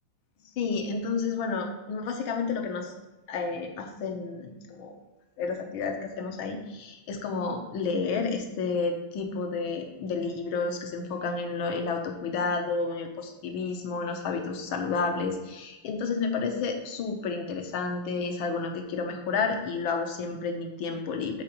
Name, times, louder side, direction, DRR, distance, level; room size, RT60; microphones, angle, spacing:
voice 1, 0.6-2.9 3.3-4.9 5.4-21.4, left 4 dB, 70° left, 4 dB, 1.6 m, -31 dB
7.5 x 3.8 x 5.0 m, 1.1 s
omnidirectional pair, 2.4 m